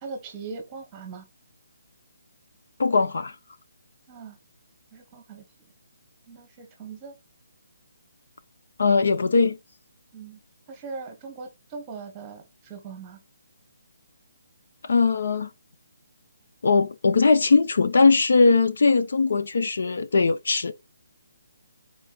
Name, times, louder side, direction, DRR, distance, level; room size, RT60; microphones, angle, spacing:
voice 1, 0.0-1.2 4.1-4.4 4.9-5.4 6.3-7.1 10.1-10.4 10.7-13.2, right 4 dB, 10° right, 1.2 m, -40 dB
voice 2, 2.8-3.3 8.8-9.6 14.8-15.5 16.6-20.7, left 4 dB, 55° left, 0.8 m, -20 dB
10.5 x 4.7 x 2.4 m
hypercardioid pair, 180°, 0 cm